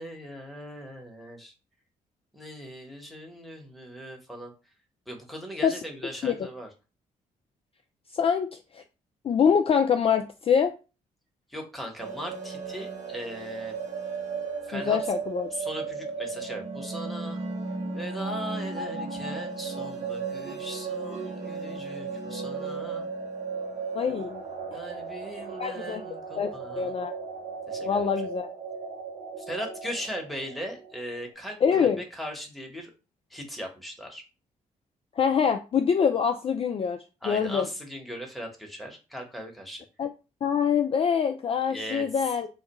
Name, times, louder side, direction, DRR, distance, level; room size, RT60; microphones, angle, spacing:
voice 1, 0.0-1.5 2.3-4.5 5.1-6.7 11.5-13.8 14.6-15.0 15.5-17.4 17.9-23.1 24.7-26.9 27.7-28.1 29.4-32.9 33.3-34.2 37.2-39.9 41.7-42.1, equal, ahead, 1 dB, 1.0 m, -39 dB
voice 2, 8.1-8.8 9.2-10.7 14.7-15.5 23.9-24.4 25.6-26.0 26.4-26.5 26.8-27.1 27.8-28.5 31.6-32.0 35.2-37.7 40.0-40.1 40.4-42.5, left 7 dB, 35° left, 6 dB, 0.3 m, -25 dB
sound 1, 12.0-31.1, right 4 dB, 45° right, 0.9 m, -35 dB
2.3 x 2.1 x 2.9 m, 0.32 s
hypercardioid pair, 45°, 17 cm